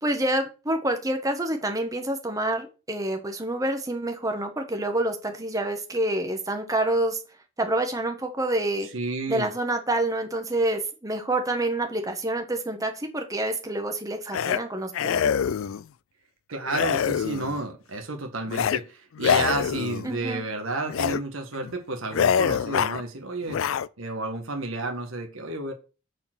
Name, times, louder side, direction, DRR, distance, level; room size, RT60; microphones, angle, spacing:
voice 1, 0.0-7.2 7.6-8.9 9.3-15.3 20.0-20.4, right 1 dB, 15° right, 1.4 m, -27 dB
voice 2, 8.9-9.5 16.5-23.6 24.0-25.7, right 2 dB, 60° right, 1.6 m, -31 dB
sound 1, 14.3-14.6 14.9-15.8 16.7-17.6 18.5-18.8 19.2-20.1 20.9-21.2 21.6-21.7 22.1-23.0 23.5-23.9, left 8 dB, 60° left, 0.3 m, -25 dB
8.7 x 4.5 x 6.1 m
head